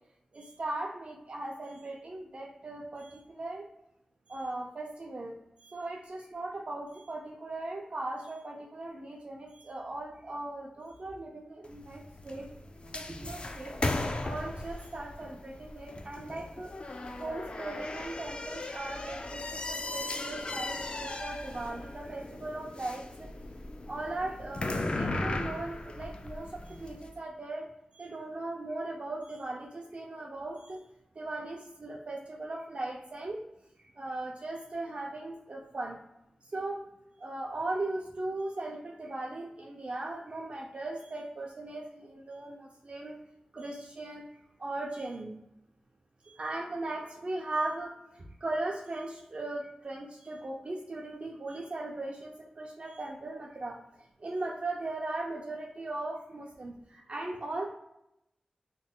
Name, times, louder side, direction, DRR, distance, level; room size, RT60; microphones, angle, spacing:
voice 1, 0.3-3.6 4.3-5.4 5.6-12.5 12.9-13.7 14.2-16.7 17.2-23.3 23.9-27.7 27.9-30.8 31.2-33.4 34.0-36.0 36.5-36.8 37.2-43.2 43.5-44.2 44.6-45.3 46.3-53.8 54.2-57.7, right 2 dB, 50° right, -1 dB, 0.5 m, -38 dB
sound 1, 11.6-27.1, left 2 dB, 45° left, 0.3 m, -37 dB
3.6 x 3.0 x 2.3 m, 0.82 s
wide cardioid pair, 70°, 2 cm